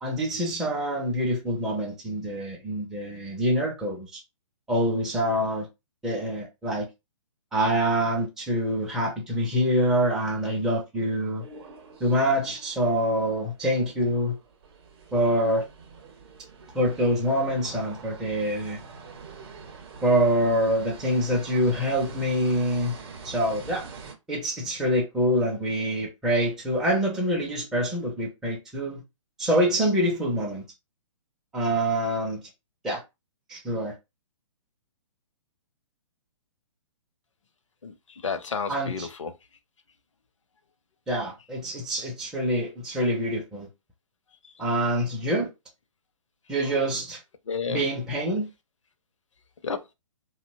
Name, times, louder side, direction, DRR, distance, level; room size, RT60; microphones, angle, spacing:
voice 1, 0.0-4.2 4.7-5.7 6.0-6.9 7.5-11.4 12.0-14.3 15.1-15.6 16.7-18.8 20.0-22.9 23.2-23.8 24.3-29.0 29.4-30.6 31.5-32.4 32.8-33.0 33.5-33.9 38.7-39.1 41.1-43.7 44.6-45.5 46.5-47.2 47.7-48.5, equal, 5° right, 0.4 m, -25 dB
sound 1, 11.4-24.1, right 4 dB, 45° right, 0.7 m, -45 dB
voice 2, 38.2-39.3 44.4-44.5 47.5-47.8 49.6-49.9, left 5 dB, 65° left, 0.6 m, -31 dB
2.7 x 2.1 x 2.5 m
figure-of-eight pair, 125°, 17 cm